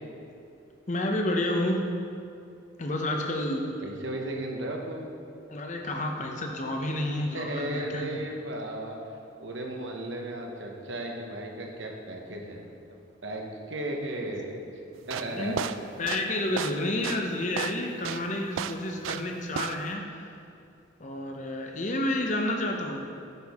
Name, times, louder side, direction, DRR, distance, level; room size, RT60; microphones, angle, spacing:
voice 1, 0.9-1.9 2.8-3.8 5.5-8.2 15.3-15.6 16.0-20.0 21.0-23.0, left 1 dB, 40° left, 2 dB, 0.8 m, -30 dB
voice 2, 3.8-5.1 7.3-9.0 9.4-12.7 13.2-14.6 15.1-15.6, right 1 dB, 70° right, 1 dB, 1.0 m, -35 dB
sound 1, 15.0-19.3 19.6-19.9, right 8 dB, 85° right, 0.3 m, -33 dB
9.5 x 6.1 x 3.6 m, 2.5 s
head